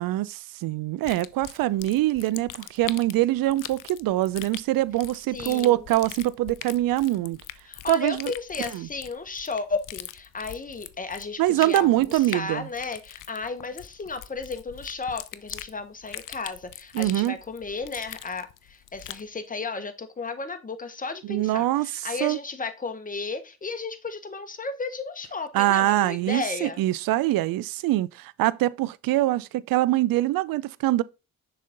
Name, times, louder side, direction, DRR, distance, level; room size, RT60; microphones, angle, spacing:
voice 1, 0.0-7.4 7.9-8.3 8.7-8.9 11.4-12.7 16.9-17.3 21.3-21.9 22.2-22.4 25.5-31.0, right 16 dB, 60° right, 0.5 m, -24 dB
sound 1, 1.0-19.3, left 13 dB, 55° left, 0.6 m, -42 dB
voice 2, 5.3-5.8 7.6-26.8, left 4 dB, 20° left, 1.2 m, -34 dB
6.4 x 4.1 x 3.8 m
hypercardioid pair, 55°, 40 cm